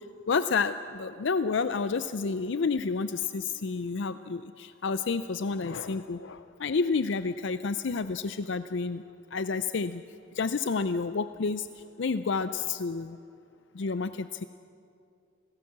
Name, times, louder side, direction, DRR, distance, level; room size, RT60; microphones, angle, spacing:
voice 1, 0.3-9.0 9.3-10.0 10.4-11.7 12.0-13.2 13.7-14.4, left 4 dB, 60° left, 12 dB, 0.5 m, -30 dB
27.0 x 18.0 x 7.3 m, 2.5 s
head